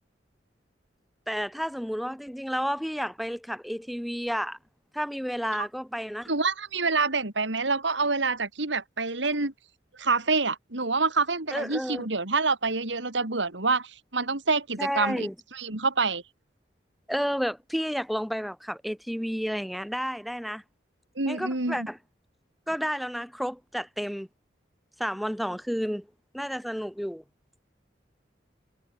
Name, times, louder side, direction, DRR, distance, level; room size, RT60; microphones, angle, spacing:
voice 1, 1.3-4.6 4.9-6.3 11.5-12.1 14.8-15.3 17.1-20.6 21.3-22.0 22.7-24.3 25.0-26.1 26.3-27.2, equal, ahead, 3.4 m, -31 dB
voice 2, 6.3-9.5 10.0-16.2 21.2-21.9, right 4 dB, 80° right, 2.8 m, -27 dB
head